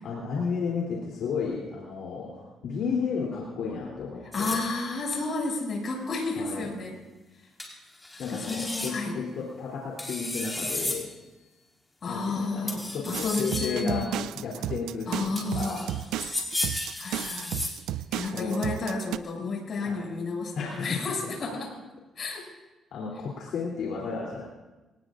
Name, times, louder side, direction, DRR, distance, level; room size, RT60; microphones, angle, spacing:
voice 1, 0.0-4.6 6.4-6.7 8.2-11.1 12.1-15.9 18.3-18.6 19.8-20.1 20.5-21.0 22.9-24.4, left 5 dB, 75° left, -3 dB, 3.2 m, -33 dB
voice 2, 4.3-7.0 8.1-9.2 12.0-14.2 15.1-15.8 17.0-17.5 18.1-21.7 22.2-22.5, left 3 dB, 50° left, 0 dB, 6.7 m, -31 dB
sound 1, 4.3-5.0 7.6-7.7 8.0-8.9 10.0-11.0 12.7-14.2 15.3-17.8, left 2 dB, 15° left, 4.3 m, -34 dB
sound 2, 13.1-19.2, right 13 dB, 90° right, 0.4 m, -34 dB
24.5 x 18.5 x 2.6 m, 1.1 s
cardioid pair, 90°, 0 cm